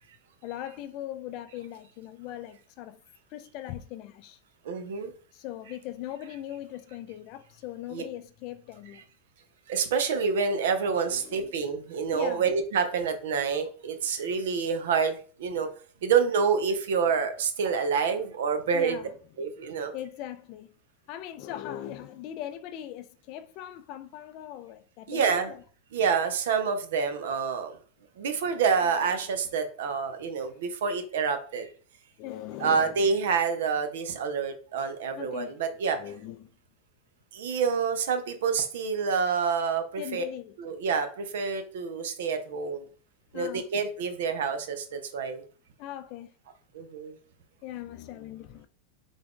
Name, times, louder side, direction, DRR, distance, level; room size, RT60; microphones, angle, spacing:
voice 1, 0.4-3.0 3.3-4.4 5.3-9.0 11.1-11.5 12.1-12.4 18.7-19.0 19.9-20.7 21.1-25.6 28.8-28.9 32.2-33.0 35.2-35.5 36.0-36.5 40.0-40.5 43.3-43.6 45.8-46.3 47.6-48.7, left 12 dB, 50° left, 0.4 m, -40 dB
voice 2, 4.6-5.1 7.9-8.0 9.7-15.7 16.0-19.0 19.4-19.9 25.1-25.5 25.9-27.7 28.2-31.7 32.6-36.0 37.3-40.2 40.6-42.8 43.3-45.4 46.7-47.2, right 6 dB, 80° right, 0.6 m, -27 dB
3.5 x 2.4 x 3.6 m
supercardioid pair, 130°, 0 cm